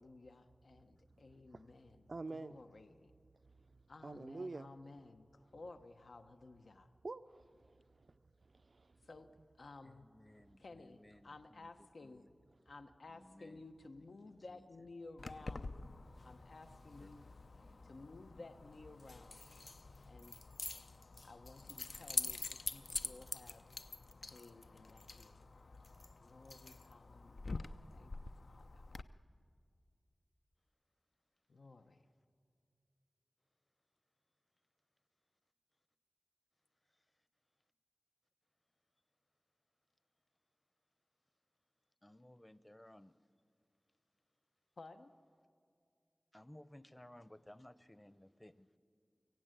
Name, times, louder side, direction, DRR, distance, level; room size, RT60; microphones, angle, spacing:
voice 1, 0.0-2.0 2.3-2.9 3.9-6.9 9.0-9.3 9.6-10.1 10.6-12.3 12.7-15.8 16.2-17.2 17.8-19.5 20.1-20.4 21.2-23.6 24.2-25.4 26.2-28.1 28.4-28.8 31.5-32.0 44.8-45.1, left 3 dB, 85° left, 0.9 m, -55 dB
voice 2, 1.2-1.6 2.1-2.6 3.6-3.7 4.0-4.7 7.0-9.0, right 3 dB, 60° right, 0.5 m, -48 dB
voice 3, 9.8-11.7 12.0-12.3 13.1-13.6 14.0-14.1 14.5-14.7 16.9-17.1 42.0-43.1 46.3-48.7, left 1 dB, 15° left, 0.7 m, -59 dB
Keys jangling, 15.2-29.0, left 3 dB, 70° left, 0.5 m, -46 dB
24.0 x 16.5 x 9.0 m
wide cardioid pair, 65°, 0 cm